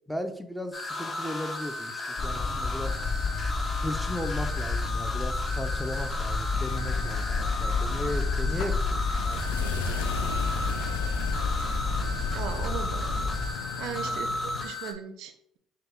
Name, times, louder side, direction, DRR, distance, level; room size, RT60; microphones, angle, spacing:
voice 1, 0.1-3.0 3.8-10.4 14.0-14.4, left 1 dB, 5° left, 7 dB, 0.6 m, -37 dB
sound 1, 0.7-14.9, left 2 dB, 25° left, 0.9 m, -35 dB
sound 2, 2.2-13.5, left 3 dB, 60° left, 1.1 m, -30 dB
sound 3, 6.5-14.7, left 6 dB, 85° left, 0.4 m, -37 dB
voice 2, 12.3-13.4 13.8-15.6, right 8 dB, 70° right, 8 dB, 0.4 m, -38 dB
5.4 x 2.2 x 3.5 m, 0.70 s
hypercardioid pair, 60°, 0 cm